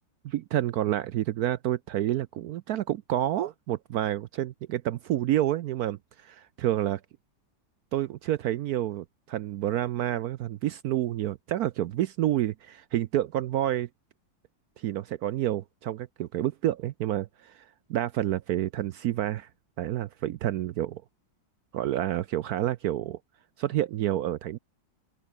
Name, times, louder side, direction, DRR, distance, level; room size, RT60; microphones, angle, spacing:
voice 1, 0.2-7.0 7.9-13.9 14.8-19.5 19.8-21.0 21.7-23.2 23.6-24.6, right 13 dB, 75° right, 0.9 m, -29 dB
open air
omnidirectional pair, 2.1 m